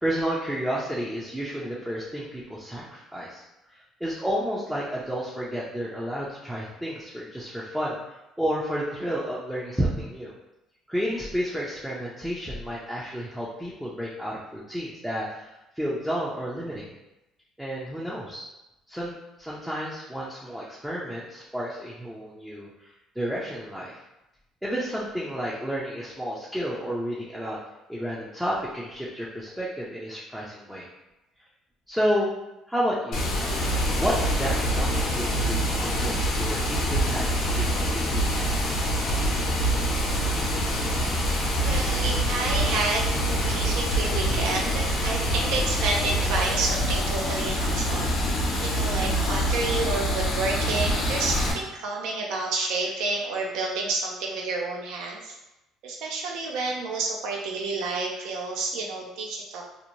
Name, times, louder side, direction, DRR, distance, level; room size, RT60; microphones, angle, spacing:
voice 1, 0.0-3.4 3.7-10.3 10.9-16.9 17.6-18.4 18.9-24.0 24.6-27.6 27.9-30.9 31.9-32.3 32.7-33.2 34.0-38.5, equal, ahead, -6 dB, 0.4 m, -31 dB
Water, 33.1-51.5, equal, 60° left, 0.7 m, -25 dB
voice 2, 41.6-55.4 55.8-59.6, right 3 dB, 80° right, 0 dB, 0.4 m, -30 dB
2.6 x 2.0 x 2.9 m, 0.94 s
cardioid pair, 125°, 0 cm